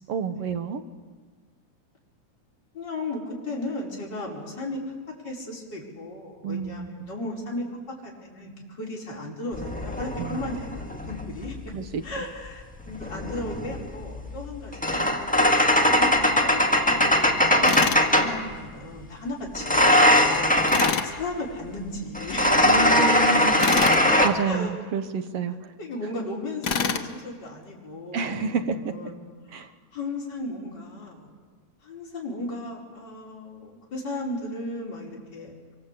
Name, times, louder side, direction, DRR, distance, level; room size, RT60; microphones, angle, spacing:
voice 1, 0.1-0.8 6.4-7.1 10.2-10.4 11.7-12.0 22.6-25.6 28.1-29.0 29.5-29.7, right 5 dB, 60° right, 9 dB, 2.0 m, -29 dB
voice 2, 2.7-5.0 5.2-7.7 8.0-11.5 12.0-15.2 15.8-20.6 21.0-22.5 24.0-24.7 25.8-29.2 29.5-31.3 31.8-35.7, left 1 dB, 30° left, -3 dB, 5.4 m, -35 dB
sound 1, 9.5-11.7 12.9-18.4 19.5-21.0 22.1-24.3, left 1 dB, 5° left, 0.9 m, -21 dB
Tools, 17.7-18.1 20.7-21.1 23.6-24.0 26.6-27.1, left 6 dB, 60° left, 1.0 m, -26 dB
25.5 x 24.5 x 8.3 m, 1.5 s
omnidirectional pair, 3.6 m